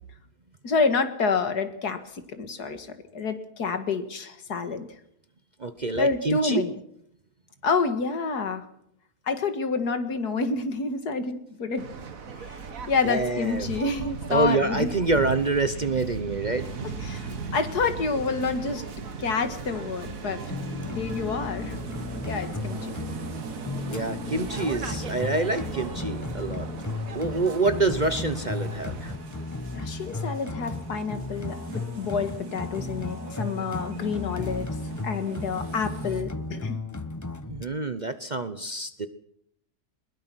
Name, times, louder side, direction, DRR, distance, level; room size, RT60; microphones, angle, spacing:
voice 1, 0.6-2.9 3.1-4.9 5.9-6.7 7.6-8.7 9.3-11.9 12.4-12.6 12.9-14.9 17.0-18.9 19.2-20.4 20.9-21.8 22.2-22.9 29.7-34.7 35.0-36.8, left 4 dB, 80° left, 9 dB, 2.3 m, -28 dB
voice 2, 5.6-6.6 13.0-13.8 14.3-16.9 23.8-26.7 27.1-29.1 37.5-39.1, right 3 dB, 35° right, 11 dB, 0.8 m, -27 dB
Waves surf, 11.8-29.2, right 5 dB, 60° right, 1.8 m, -38 dB
sound 1, 16.6-36.2, right 3 dB, 80° right, 2.1 m, -43 dB
sound 2, 20.4-37.7, left 3 dB, 25° left, 0.4 m, -35 dB
21.0 x 21.0 x 6.2 m, 0.74 s
omnidirectional pair, 1.7 m